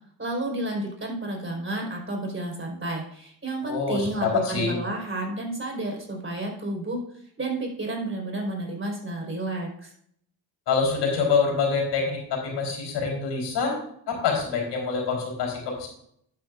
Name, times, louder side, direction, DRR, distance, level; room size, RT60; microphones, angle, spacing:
voice 1, 0.2-7.0 7.4-9.9, right 2 dB, 30° right, 1 dB, 4.3 m, -31 dB
voice 2, 3.6-4.7 10.7-13.8 14.1-15.9, left 5 dB, 80° left, 0 dB, 3.9 m, -26 dB
11.5 x 9.3 x 2.5 m, 0.68 s
supercardioid pair, 65°, 40 cm